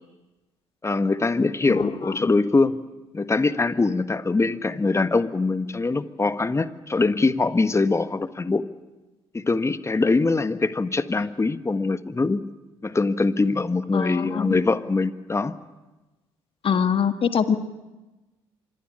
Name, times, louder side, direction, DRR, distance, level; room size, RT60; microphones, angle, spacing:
voice 1, 0.8-2.8 3.1-8.6 9.3-12.4 12.8-15.5, left 3 dB, 20° left, 12 dB, 1.5 m, -23 dB
voice 2, 1.7-2.3 13.9-14.5 16.6-17.6, left 7 dB, 45° left, 9 dB, 1.8 m, -24 dB
25.5 x 19.0 x 9.9 m, 1.1 s
hypercardioid pair, 50°, 13 cm